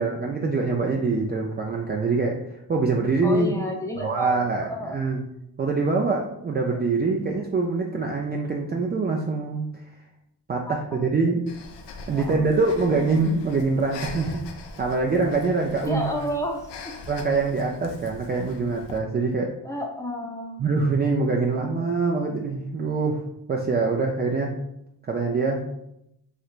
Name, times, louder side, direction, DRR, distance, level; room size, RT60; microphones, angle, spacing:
voice 1, 0.0-2.4 2.7-3.5 4.0-5.2 5.6-9.7 10.5-11.4 12.1-14.4 14.8-16.1 17.1-19.5 20.6-23.2 23.5-24.5 25.1-25.6, right 3 dB, 25° right, 0 dB, 0.4 m, -24 dB
voice 2, 3.2-5.1 6.7-6.8 10.7-11.1 12.1-13.3 15.8-16.9 19.6-20.6 21.5-21.9, equal, 5° left, 0 dB, 0.7 m, -32 dB
Breathing, 11.5-19.0, left 3 dB, 85° left, 0.6 m, -42 dB
3.3 x 2.8 x 2.4 m, 0.80 s
cardioid pair, 70°, 41 cm